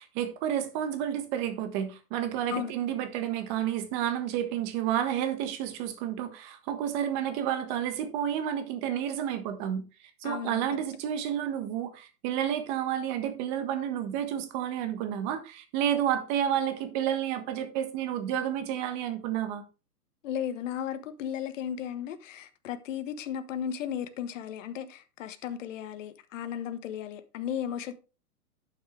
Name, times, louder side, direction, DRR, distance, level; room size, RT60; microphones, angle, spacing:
voice 1, 0.0-9.8 10.2-19.6, right 10 dB, 30° right, 1.4 m, -30 dB
voice 2, 10.2-10.7 20.2-27.9, left 9 dB, 50° left, 1.3 m, -35 dB
11.0 x 6.2 x 3.3 m
hypercardioid pair, 150°, 48 cm